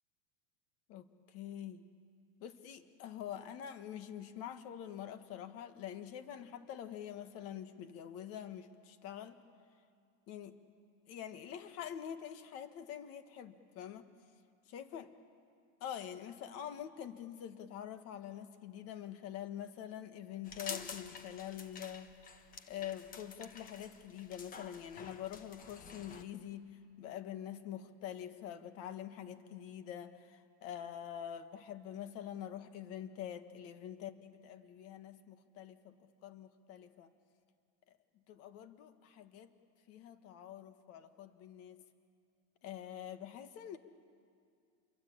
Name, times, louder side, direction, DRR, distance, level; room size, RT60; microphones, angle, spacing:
voice 1, 0.9-1.8 2.4-9.4 10.3-10.6 11.1-14.1 14.7-15.1 15.8-22.1 22.7-37.1 37.9-38.0 38.3-39.5 39.9-41.8 42.6-43.8, left 10 dB, 45° left, 10 dB, 1.6 m, -46 dB
sound 1, 20.5-26.2, left 5 dB, 25° left, 1.2 m, -49 dB
28.0 x 22.5 x 8.7 m, 2.3 s
supercardioid pair, 150°, 34 cm